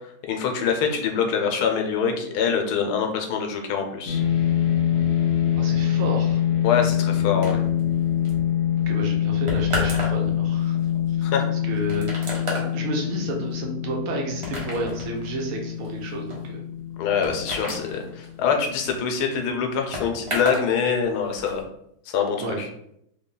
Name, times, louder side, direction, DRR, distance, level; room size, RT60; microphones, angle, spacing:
voice 1, 0.3-4.2 6.6-7.6 11.2-11.4 17.0-21.7 22.1-22.7, left 6 dB, 85° left, 3 dB, 1.2 m, -24 dB
sound 1, 4.1-18.5, left 10 dB, 65° left, 0.6 m, -25 dB
voice 2, 5.5-6.4 8.9-10.8 11.2-11.3 11.7-16.6 22.4-22.6, right 2 dB, 65° right, 0 dB, 1.1 m, -31 dB
sound 2, 7.4-20.7 21.0-21.6, equal, 30° right, 0.6 m, -34 dB
3.4 x 2.2 x 3.7 m, 0.75 s
omnidirectional pair, 1.7 m